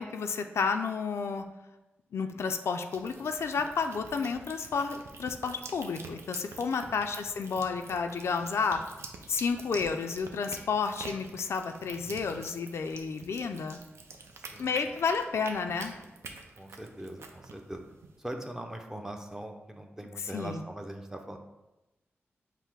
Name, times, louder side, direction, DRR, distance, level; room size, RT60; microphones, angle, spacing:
voice 1, 0.0-1.4 2.1-8.8 9.3-13.8 14.6-15.9 20.3-20.6, left 5 dB, 80° left, 6 dB, 0.3 m, -31 dB
sound 1, 2.9-18.2, right 3 dB, 80° right, 0.5 m, -47 dB
voice 2, 6.8-7.1 11.9-12.3 14.3-14.7 16.6-17.8 18.2-21.4, right 1 dB, 10° right, 4 dB, 0.5 m, -41 dB
5.6 x 2.0 x 4.5 m, 1.0 s
wide cardioid pair, 90°, 4 cm